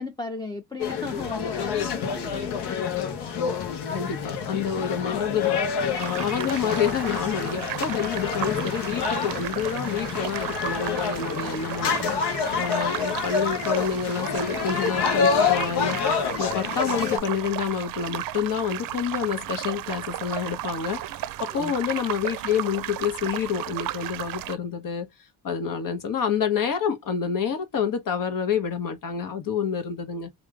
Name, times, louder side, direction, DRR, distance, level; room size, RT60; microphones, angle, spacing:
voice 1, 0.0-3.3 21.5-21.7, left 3 dB, 10° left, 0.7 m, -36 dB
sound 1, 0.8-17.2, left 6 dB, 70° left, 1.1 m, -28 dB
voice 2, 3.9-5.6 6.0-16.1 16.4-25.1 25.4-30.3, left 7 dB, 50° left, 1.3 m, -28 dB
sound 2, 6.0-24.6, right 13 dB, 55° right, 0.6 m, -34 dB
3.1 x 2.7 x 3.6 m
supercardioid pair, 80°, 41 cm